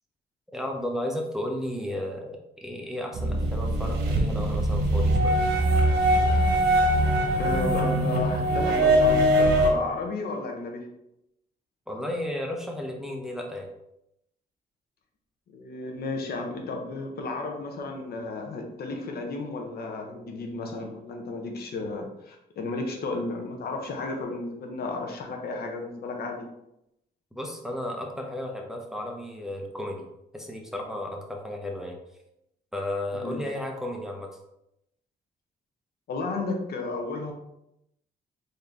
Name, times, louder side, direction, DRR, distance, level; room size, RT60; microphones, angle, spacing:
voice 1, 0.5-5.4 11.9-13.7 27.3-30.0 30.3-32.0 32.7-34.3, left 1 dB, 5° right, 0 dB, 0.7 m, -33 dB
sound 1, 3.1-9.7, right 1 dB, 85° right, 0.9 m, -22 dB
voice 2, 7.4-10.9 15.5-26.5 33.1-33.4 36.1-37.3, left 3 dB, 70° left, 2 dB, 0.8 m, -33 dB
3.8 x 2.8 x 3.4 m, 0.82 s
cardioid pair, 100°, 17 cm